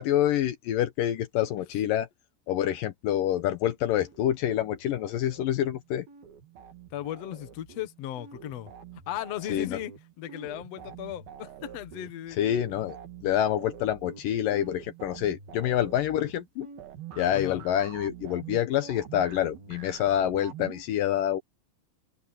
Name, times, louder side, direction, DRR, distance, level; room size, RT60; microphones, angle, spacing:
voice 1, 0.0-2.1 2.5-6.1 9.5-9.8 12.4-13.0 13.2-16.7 17.2-21.4, left 11 dB, 75° left, 2.6 m, -27 dB
sound 1, 4.0-5.8 6.1-20.8, right 8 dB, 85° right, 4.2 m, -46 dB
voice 2, 6.9-8.7 9.1-9.9 10.2-12.4 17.3-17.6, left 12 dB, 55° left, 2.1 m, -36 dB
omnidirectional pair, 4.1 m